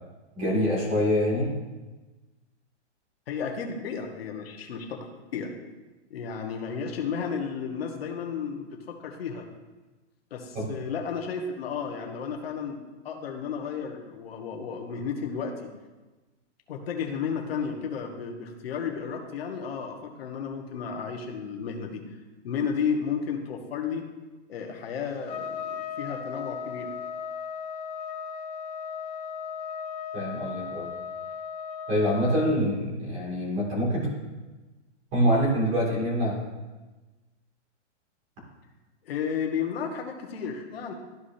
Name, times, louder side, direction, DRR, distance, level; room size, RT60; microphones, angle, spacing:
voice 1, 0.3-1.5 10.5-10.7 30.1-30.9 31.9-34.1 35.1-36.4, equal, 20° right, -4 dB, 2.6 m, -25 dB
voice 2, 3.3-5.5 6.1-9.4 10.3-12.8 13.0-15.7 16.7-22.0 22.4-24.1 24.5-26.9 39.0-40.9, left 6 dB, 55° left, 1 dB, 1.5 m, -33 dB
Trumpet, 25.3-32.6, left 6 dB, 35° left, 0.6 m, -36 dB
13.5 x 4.9 x 2.8 m, 1.2 s
hypercardioid pair, 175°, 36 cm